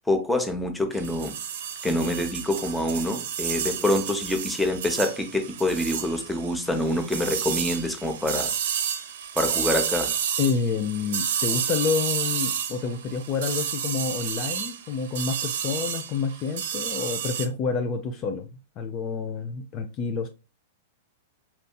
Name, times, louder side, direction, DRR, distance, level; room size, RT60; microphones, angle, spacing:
voice 1, 0.1-1.3 1.8-8.5 9.4-10.1, left 1 dB, 5° left, 0.7 m, -26 dB
sound 1, 0.9-17.5, right 8 dB, 65° right, 0.6 m, -31 dB
voice 2, 10.4-18.5 18.8-20.3, left 5 dB, 35° left, 0.4 m, -28 dB
4.3 x 2.6 x 2.2 m
hypercardioid pair, 110°, 0 cm